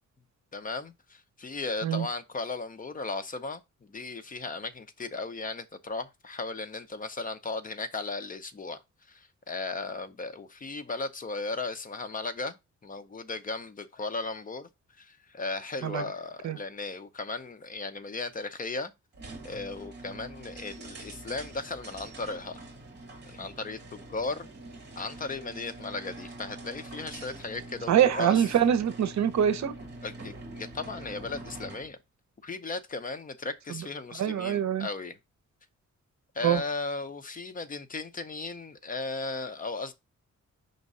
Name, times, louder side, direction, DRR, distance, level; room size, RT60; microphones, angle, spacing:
voice 1, 0.5-8.8 9.1-12.6 12.8-14.7 15.0-18.9 19.4-22.6 23.3-24.5 25.0-28.4 30.0-32.0 32.4-35.2 36.3-39.9, left 3 dB, 30° left, 0.6 m, -36 dB
sound 1, 19.1-31.9, right 2 dB, 35° right, 2.1 m, -45 dB
voice 2, 27.9-29.7 34.2-34.9 36.4-36.6, right 9 dB, 70° right, 0.7 m, -24 dB
5.3 x 3.6 x 5.3 m
wide cardioid pair, 170°, 29 cm